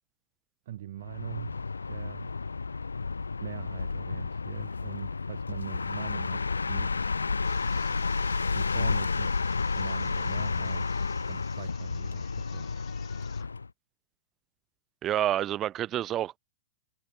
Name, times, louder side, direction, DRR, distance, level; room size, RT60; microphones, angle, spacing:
voice 1, 0.7-2.3 3.4-7.1 8.5-9.3 9.7-10.9 11.2-12.7, right 13 dB, 60° right, 2.0 m, -42 dB
sound 1, 1.0-13.7, left 4 dB, 90° left, 0.6 m, -31 dB
sound 2, 7.4-13.5, left 15 dB, 35° left, 6.3 m, -54 dB
voice 2, 15.0-16.4, right 12 dB, 30° right, 1.1 m, -28 dB
hypercardioid pair, 110°, 0 cm